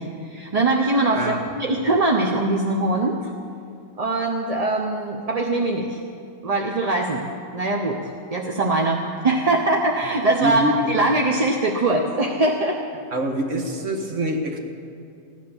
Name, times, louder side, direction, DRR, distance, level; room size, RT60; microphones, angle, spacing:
voice 1, 0.0-3.2 4.0-6.0 6.4-12.8, right 2 dB, 35° right, 1 dB, 0.7 m, -22 dB
voice 2, 1.1-1.7 10.4-11.1 13.1-14.6, equal, 60° right, 3 dB, 1.8 m, -26 dB
15.5 x 10.5 x 7.1 m, 2.3 s
omnidirectional pair, 1.5 m